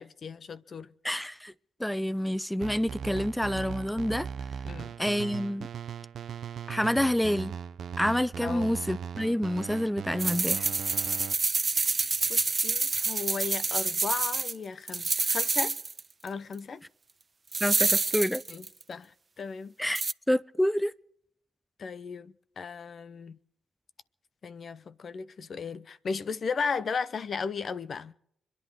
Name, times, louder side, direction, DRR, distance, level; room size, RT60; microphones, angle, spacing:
voice 1, 0.0-0.9 4.6-4.9 8.4-8.7 12.3-15.8 16.2-16.8 18.5-19.1 19.4-19.9 21.8-23.4 24.4-28.1, left 5 dB, 55° left, 0.8 m, -35 dB
voice 2, 1.0-1.5 1.8-4.3 5.0-5.7 6.7-7.5 8.0-10.7 17.6-18.4 19.8-20.0 20.3-20.9, equal, 5° left, 0.6 m, -28 dB
sound 1, 2.6-11.3, right 7 dB, 65° right, 0.8 m, -39 dB
sound 2, 10.2-14.5 14.9-16.0 16.3-16.4 17.5-18.8 20.0-20.1, right 4 dB, 40° right, 0.5 m, -27 dB
25.0 x 10.5 x 4.9 m
hypercardioid pair, 45°, 0 cm